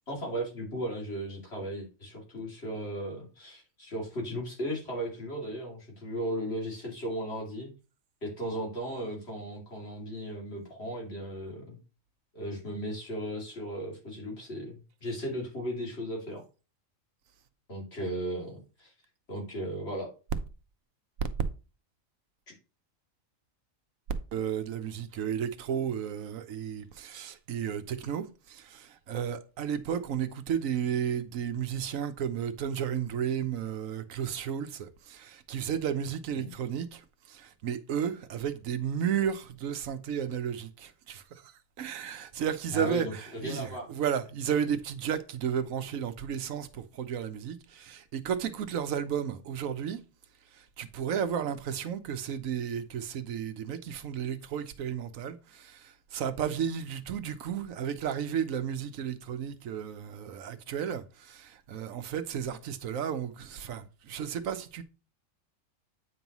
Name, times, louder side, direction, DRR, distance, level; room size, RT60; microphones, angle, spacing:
voice 1, 0.1-7.7 8.2-11.8 12.3-16.4 17.7-18.9 19.3-20.1 36.4-36.5 42.7-43.8, equal, 50° left, 2.8 m, -36 dB
voice 2, 24.3-41.5 41.8-50.0 50.5-64.8, right 8 dB, 90° right, 1.2 m, -33 dB
8.8 x 5.4 x 3.0 m
omnidirectional pair, 1.4 m